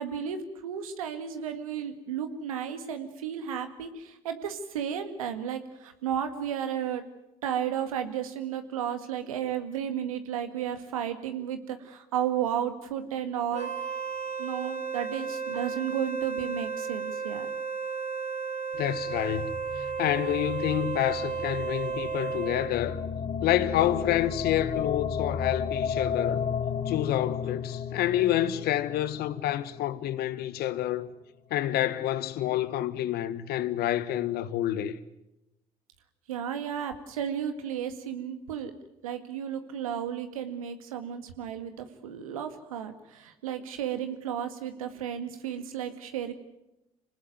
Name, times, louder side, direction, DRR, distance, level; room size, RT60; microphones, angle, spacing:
voice 1, 0.0-7.0 7.4-13.7 14.4-17.5 36.3-38.7 39.0-46.3, right 9 dB, 90° right, 2.0 m, -33 dB
Wind instrument woodwind instrument, 13.5-22.8, right 5 dB, 40° right, 3.8 m, -33 dB
voice 2, 18.7-19.5 20.0-23.0 23.4-26.4 26.9-31.1 31.5-35.0, left 13 dB, 65° left, 1.4 m, -28 dB
sound 1, 18.7-31.0, left 7 dB, 45° left, 2.6 m, -34 dB
26.0 x 19.0 x 9.4 m
hypercardioid pair, 55°, 17 cm